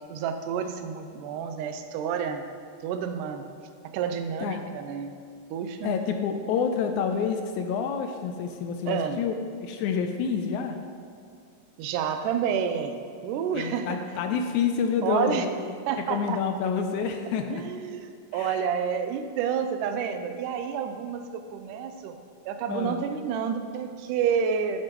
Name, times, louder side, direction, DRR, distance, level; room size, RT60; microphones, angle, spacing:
voice 1, 0.1-2.4 2.8-3.5 3.9-5.1 5.5-6.0 8.9-9.2 11.8-12.9 13.2-14.0 15.0-15.5 15.9-16.4 17.5-22.1 22.5-24.8, right 7 dB, 85° right, 8 dB, 2.1 m, -29 dB
voice 2, 5.8-9.3 9.6-10.8 13.6-15.7 16.1-17.6 18.3-18.6 22.7-23.0, left 6 dB, 80° left, 6 dB, 1.8 m, -28 dB
10.5 x 7.5 x 3.0 m, 2.4 s
omnidirectional pair, 3.6 m